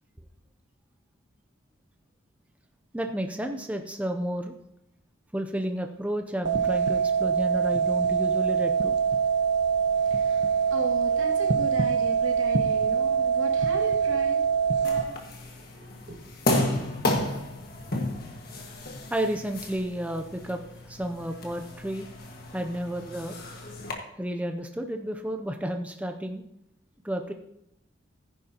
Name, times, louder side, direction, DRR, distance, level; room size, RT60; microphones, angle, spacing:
voice 1, 2.9-4.5 5.3-9.0 19.1-22.1 22.5-23.4 24.2-26.4 27.0-27.3, right 1 dB, 5° right, 5 dB, 0.5 m, -31 dB
sound 1, 6.5-15.0, right 6 dB, 55° right, 1.0 m, -24 dB
voice 2, 9.9-16.3, right 1 dB, 80° right, 0 dB, 2.1 m, -38 dB
sound 2, 14.8-23.9, left 1 dB, 50° left, 1.7 m, -32 dB
14.5 x 10.0 x 2.9 m, 0.80 s
head